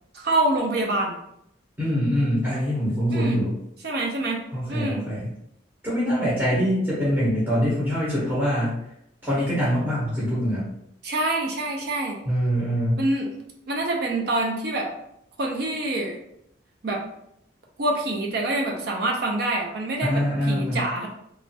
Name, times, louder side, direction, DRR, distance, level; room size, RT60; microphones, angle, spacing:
voice 1, 0.1-1.2 3.1-3.4 3.8-4.4 4.7-5.0 11.0-12.2 13.0-13.3 13.7-14.9 15.4-16.2 16.8-17.0 17.8-21.1, right 2 dB, 55° right, 0 dB, 0.5 m, -26 dB
voice 2, 1.8-3.5 4.5-5.3 5.8-8.8 9.2-10.7 12.2-13.0 20.0-20.8, equal, 10° right, -8 dB, 0.7 m, -24 dB
3.0 x 2.3 x 2.7 m, 0.76 s
head